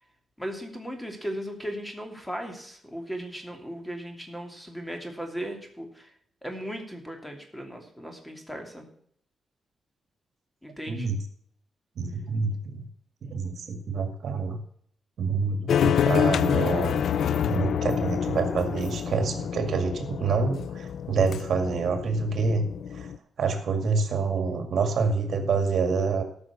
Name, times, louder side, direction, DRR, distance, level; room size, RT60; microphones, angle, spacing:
voice 1, 0.4-6.1 6.4-8.9 10.6-11.1, equal, 5° left, 4 dB, 2.8 m, -37 dB
voice 2, 10.9-11.2 12.0-12.8 13.2-14.6 15.2-17.0 17.5-22.6 22.9-23.1 23.4-26.2, right 4 dB, 70° right, 6 dB, 2.1 m, -27 dB
sound 1, 15.7-23.2, left 8 dB, 80° left, 0.4 m, -27 dB
13.5 x 6.2 x 7.0 m, 0.63 s
cardioid pair, 90°, 0 cm